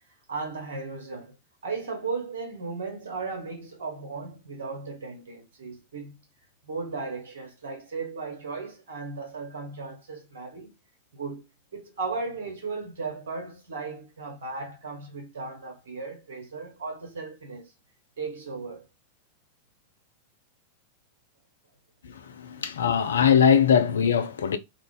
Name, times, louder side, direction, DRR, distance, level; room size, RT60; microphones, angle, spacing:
voice 1, 0.3-1.3 1.6-6.2 6.6-10.7 11.1-11.4 11.7-17.7 18.2-18.9 22.5-22.9, right 4 dB, 60° right, 1.2 m, -36 dB
voice 2, 22.1-24.6, left 8 dB, 65° left, 0.4 m, -21 dB
2.4 x 2.4 x 3.6 m
figure-of-eight pair, 90°, 0 cm